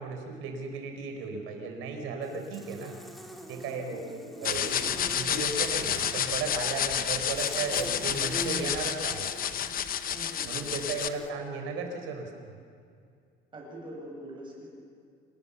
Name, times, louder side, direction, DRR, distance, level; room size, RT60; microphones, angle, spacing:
voice 1, 0.0-3.0 3.5-4.0 4.4-9.3 10.4-12.5, right 4 dB, 85° right, 4 dB, 4.6 m, -35 dB
Buzz, 2.2-11.3, equal, ahead, 2.4 m, -45 dB
voice 2, 3.8-4.7 10.1-10.7 11.4-11.5 13.5-14.7, right 1 dB, 25° right, -1 dB, 7.2 m, -43 dB
sound 1, 4.4-11.1, left 9 dB, 45° left, 1.0 m, -30 dB
27.0 x 20.0 x 7.1 m, 2.3 s
cardioid pair, 150°, 21 cm